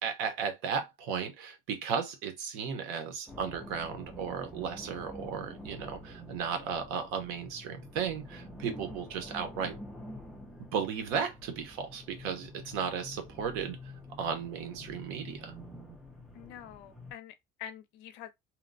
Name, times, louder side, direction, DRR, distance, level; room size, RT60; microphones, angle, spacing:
voice 1, 0.0-9.8 10.6-13.9 14.2-15.5, right 6 dB, 80° right, 0.9 m, -35 dB
sound 1, 3.3-17.1, left 1 dB, ahead, 0.5 m, -47 dB
voice 2, 16.3-18.3, left 10 dB, 65° left, 0.6 m, -46 dB
2.8 x 2.1 x 2.6 m
cardioid pair, 160°, 20 cm